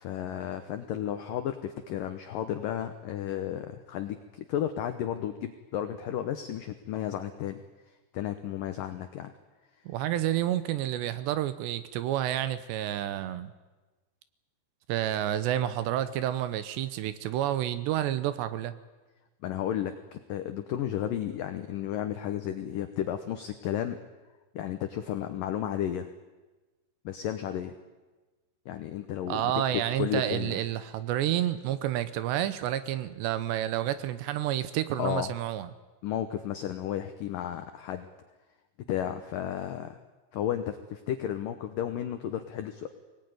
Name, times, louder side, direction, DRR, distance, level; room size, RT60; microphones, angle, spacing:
voice 1, 0.0-7.6 8.1-9.3 19.4-24.0 24.5-26.1 27.1-27.8 28.7-30.6 35.0-35.3 36.0-38.1 38.9-40.0 40.3-42.9, left 10 dB, 85° left, 8 dB, 1.9 m, -33 dB
voice 2, 9.9-13.5 14.9-18.8 29.3-35.7, right 12 dB, 75° right, 13 dB, 2.9 m, -29 dB
24.0 x 19.0 x 9.5 m, 1.2 s
omnidirectional pair, 5.3 m